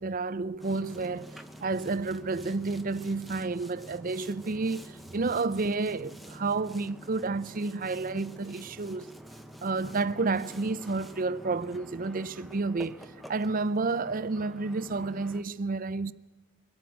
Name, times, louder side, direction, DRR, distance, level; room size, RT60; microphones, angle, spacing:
voice 1, 0.0-9.1 9.6-16.1, right 3 dB, 40° right, 0.5 m, -30 dB
Boat Water vehicle, 0.6-15.4, right 1 dB, ahead, 1.0 m, -48 dB
23.5 x 12.5 x 9.2 m
head